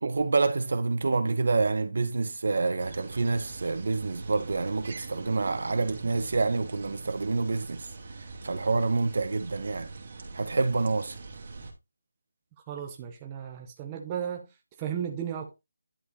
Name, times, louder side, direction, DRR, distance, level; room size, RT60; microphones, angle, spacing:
voice 1, 0.0-7.9 8.4-9.9 10.3-11.2, right 3 dB, 60° right, 1.6 m, -27 dB
sound 1, 2.8-11.7, right 3 dB, 40° right, 2.9 m, -43 dB
voice 2, 12.7-14.5 14.8-15.5, right 8 dB, 15° right, 1.2 m, -34 dB
11.5 x 4.9 x 4.1 m
figure-of-eight pair, 170°, 0 cm